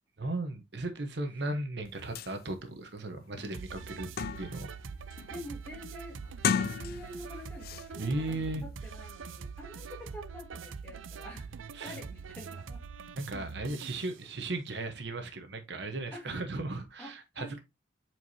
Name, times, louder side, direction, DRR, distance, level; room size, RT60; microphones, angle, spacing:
voice 1, 0.2-4.1 4.4-4.7 8.0-8.6 11.8-12.0 13.1-17.6, right 2 dB, 60° right, 1.0 m, -36 dB
sound 1, 1.8-1.9 2.2-2.3 2.9-3.0 3.4-4.7 5.1-5.5 6.3-7.3 7.6-7.9, left 7 dB, 50° left, 0.3 m, -33 dB
sound 2, 3.5-14.1, right 5 dB, 85° right, 0.5 m, -43 dB
voice 2, 5.3-6.2 6.5-8.4 8.6-11.5 11.8-12.8 14.2-14.3 16.1-16.4 17.0-17.6, left 1 dB, 10° left, 2.3 m, -47 dB
7.8 x 4.6 x 2.7 m
head